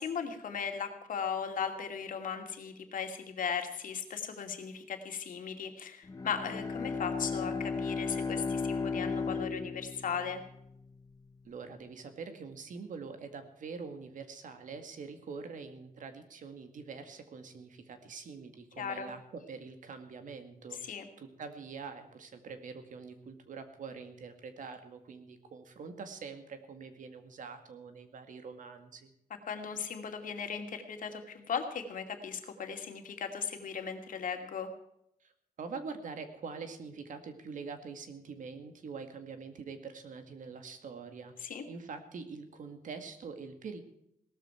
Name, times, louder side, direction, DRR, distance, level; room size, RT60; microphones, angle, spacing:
voice 1, 0.0-10.4 18.8-19.1 20.8-21.1 29.5-34.7 41.4-41.6, left 6 dB, 65° left, 5 dB, 2.4 m, -37 dB
Bowed string instrument, 6.0-10.8, left 4 dB, 25° left, 1.0 m, -35 dB
voice 2, 11.4-29.1 35.2-35.3 35.6-43.8, right 5 dB, 60° right, 8 dB, 2.1 m, -45 dB
18.0 x 13.5 x 4.6 m, 0.76 s
wide cardioid pair, 160°, 15 cm